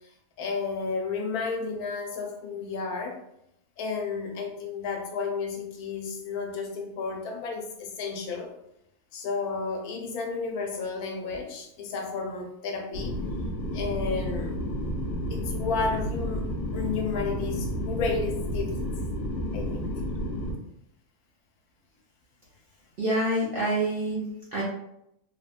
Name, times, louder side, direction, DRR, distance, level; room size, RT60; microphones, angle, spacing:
voice 1, 0.4-3.2 3.8-8.5 9.1-13.2 13.7-14.6 15.3-18.8 19.5-19.9, left 4 dB, 90° left, 3 dB, 1.1 m, -32 dB
White Noise Low Colour A, 12.9-20.5, equal, 55° left, 0.7 m, -31 dB
voice 2, 23.0-24.6, right 1 dB, 70° right, -5 dB, 0.5 m, -27 dB
3.3 x 2.1 x 2.4 m, 0.79 s
omnidirectional pair, 1.5 m